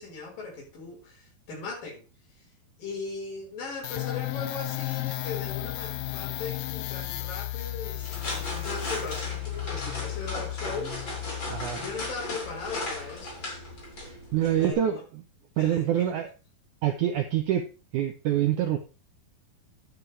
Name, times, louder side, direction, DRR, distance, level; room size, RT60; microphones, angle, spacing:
voice 1, 0.0-2.1 2.4-2.5 2.8-11.1 11.8-13.5 14.4-15.0 15.6-16.2, left 4 dB, 65° left, 0 dB, 5.4 m, -39 dB
sound 1, 3.8-12.3, left 17 dB, 85° left, 2.7 m, -34 dB
sound 2, 7.9-14.7, left 1 dB, 30° left, 3.6 m, -36 dB
voice 2, 11.5-11.8 14.0-15.0 15.6-16.3 16.8-17.7 17.9-18.8, right 11 dB, 80° right, 7 dB, 1.8 m, -26 dB
11.0 x 9.5 x 3.2 m, 0.32 s
omnidirectional pair, 4.4 m